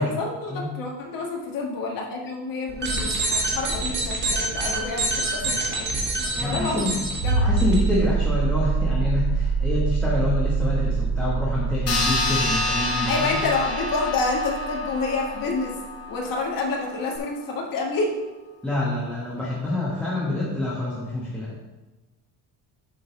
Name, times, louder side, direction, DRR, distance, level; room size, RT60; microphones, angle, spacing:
voice 1, 0.0-5.9 6.4-6.9 7.2-7.5 13.1-15.8 16.1-18.1, left 3 dB, 55° left, 0 dB, 1.7 m, -28 dB
sound 1, 2.7-7.8, right 2 dB, 25° right, 1.5 m, -26 dB
voice 2, 6.4-7.1 7.4-13.4 18.6-21.6, left 2 dB, 5° left, -7 dB, 1.1 m, -27 dB
sound 2, 7.2-15.6 17.2-17.3, right 4 dB, 60° right, 1.0 m, -25 dB
sound 3, 11.9-16.7, left 2 dB, 35° left, 1.4 m, -28 dB
7.8 x 3.9 x 5.9 m, 1.1 s
cardioid pair, 175°, 41 cm